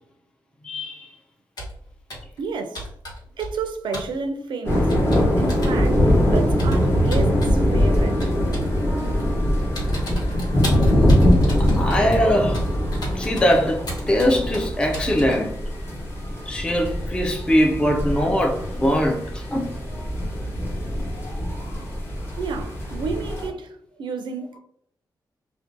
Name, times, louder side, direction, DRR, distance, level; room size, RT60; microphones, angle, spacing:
voice 1, 0.6-1.1 8.9-9.3 11.8-12.6 13.1-15.5 16.5-20.1, equal, 10° left, 0.3 m, -22 dB
Computer keyboard, 1.6-1.8 2.1-2.4 2.8-3.7 3.9-4.1 4.9-5.8 6.6-7.6 8.2-8.8 9.2-9.4 9.8-15.4, equal, 60° left, 1.1 m, -34 dB
voice 2, 2.4-2.9 3.4-5.0 5.4-8.3 22.4-23.7 24.0-24.6, right 4 dB, 80° right, 0.4 m, -31 dB
sound 1, 4.6-23.5, equal, 30° left, 0.9 m, -22 dB
2.5 x 2.1 x 2.5 m
cardioid pair, 90°, 8 cm